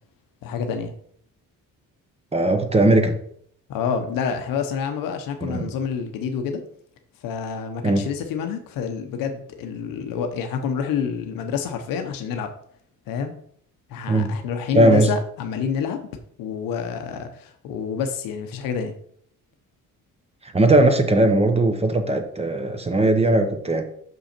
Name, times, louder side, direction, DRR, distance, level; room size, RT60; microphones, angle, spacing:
voice 1, 0.4-0.9 3.7-6.6 7.2-12.5 13.1-13.3 13.9-16.0 16.4-18.9, left 6 dB, 90° left, 6 dB, 0.9 m, -28 dB
voice 2, 2.3-3.2 5.4-5.7 7.8-8.0 14.1-14.3 14.7-15.1 20.4-23.8, right 2 dB, 20° right, 6 dB, 0.8 m, -18 dB
6.2 x 5.5 x 4.4 m, 0.65 s
cardioid pair, 140°, 33 cm